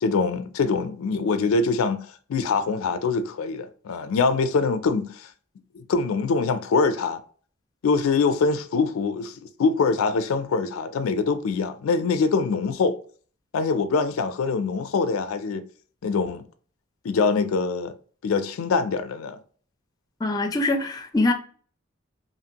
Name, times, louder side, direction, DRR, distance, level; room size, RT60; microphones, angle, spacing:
voice 1, 0.0-5.3 5.7-7.2 7.8-9.3 9.6-13.0 13.5-15.6 16.0-16.5 17.0-17.9 18.2-19.4, left 4 dB, 90° left, 0.4 m, -24 dB
voice 2, 20.2-21.3, left 2 dB, 20° left, 0.4 m, -23 dB
2.9 x 2.5 x 2.8 m
head